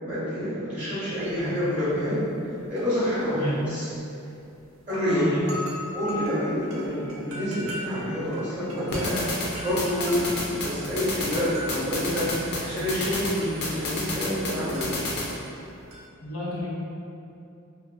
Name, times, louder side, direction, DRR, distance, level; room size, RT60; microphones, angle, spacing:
voice 1, 0.0-2.2 2.7-3.9 4.9-5.2 5.9-9.2 9.6-14.9, equal, 35° right, -13 dB, 0.7 m, -28 dB
sound 1, 1.2-1.5 1.9-2.0 2.6-4.0 4.5-4.6 4.8-14.5 14.7-16.1, equal, 70° right, 0.4 m, -40 dB
voice 2, 5.1-5.6 16.2-16.7, left 1 dB, 90° left, -7 dB, 0.7 m, -32 dB
sound 2, 8.9-15.3, left 1 dB, 50° left, 0.4 m, -32 dB
2.4 x 2.2 x 2.3 m, 2.6 s
head